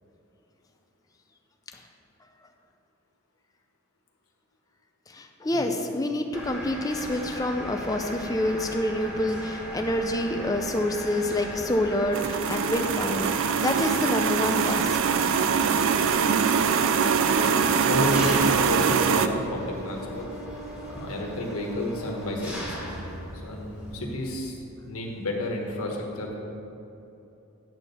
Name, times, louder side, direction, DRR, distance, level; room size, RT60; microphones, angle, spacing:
voice 1, 5.1-14.9 15.2-15.4, left 1 dB, 15° left, 4 dB, 0.5 m, -27 dB
Mechanisms, 6.3-24.4, equal, 5° right, 1.7 m, -38 dB
sound 1, 12.1-19.3, right 6 dB, 60° right, 0.3 m, -23 dB
voice 2, 17.8-20.2 20.9-22.8 23.4-24.6 24.8-26.3, left 1 dB, 75° left, 0 dB, 1.3 m, -31 dB
8.8 x 4.4 x 6.7 m, 2.9 s
head